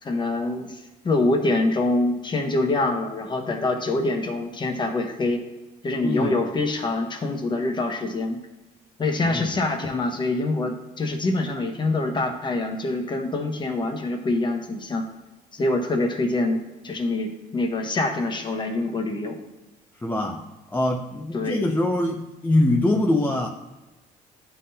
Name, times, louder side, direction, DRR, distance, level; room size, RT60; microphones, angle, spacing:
voice 1, 0.0-5.4 5.8-8.4 9.0-15.1 15.5-19.4 21.3-21.7, left 2 dB, 25° left, 4 dB, 1.0 m, -25 dB
voice 2, 6.0-6.3 9.3-9.5 20.0-20.4 20.7-23.5, left 1 dB, 10° left, 0 dB, 0.5 m, -23 dB
11.0 x 3.8 x 2.8 m, 1.1 s
cardioid pair, 110°, 17 cm